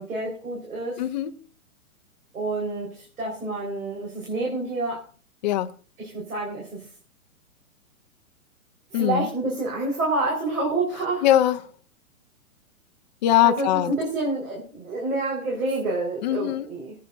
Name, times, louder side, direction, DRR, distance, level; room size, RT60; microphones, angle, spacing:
voice 1, 0.0-1.0 2.3-5.0 6.0-6.9 8.9-11.2 13.4-16.9, right 2 dB, 75° right, 4.3 m, -28 dB
voice 2, 1.0-1.3 5.4-5.7 8.9-9.3 11.2-11.6 13.2-13.9 16.2-16.7, left 12 dB, 30° left, 0.5 m, -21 dB
25.0 x 9.4 x 2.5 m
hypercardioid pair, 150°, 43 cm